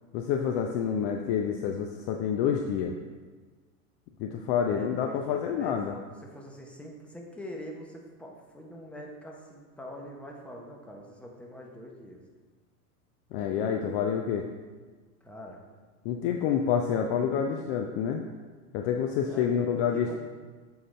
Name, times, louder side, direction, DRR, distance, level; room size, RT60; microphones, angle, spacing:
voice 1, 0.1-2.9 4.2-5.9 13.3-14.5 16.0-18.2 18.7-20.2, left 7 dB, 40° left, 3 dB, 0.5 m, -28 dB
voice 2, 4.6-12.2 15.2-15.6 19.2-20.2, equal, 5° left, -1 dB, 0.9 m, -44 dB
7.5 x 3.9 x 4.2 m, 1.4 s
hypercardioid pair, 105°, 45 cm